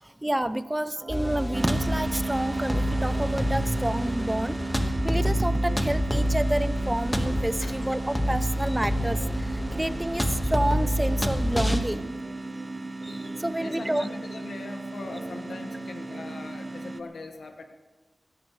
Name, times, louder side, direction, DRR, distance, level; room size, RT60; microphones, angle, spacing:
voice 1, 0.0-12.1 13.0-14.1, right 1 dB, 15° right, 13 dB, 0.5 m, -29 dB
sound 1, 1.0-17.0, right 2 dB, 50° right, 4.4 m, -44 dB
sound 2, 1.1-11.8, equal, 10° left, 1.5 m, -27 dB
sound 3, 1.5-17.0, right 2 dB, 30° right, 0.9 m, -35 dB
voice 2, 13.6-17.6, left 3 dB, 85° left, 5 dB, 1.5 m, -41 dB
21.5 x 17.5 x 3.2 m, 1.3 s
wide cardioid pair, 105°, 0 cm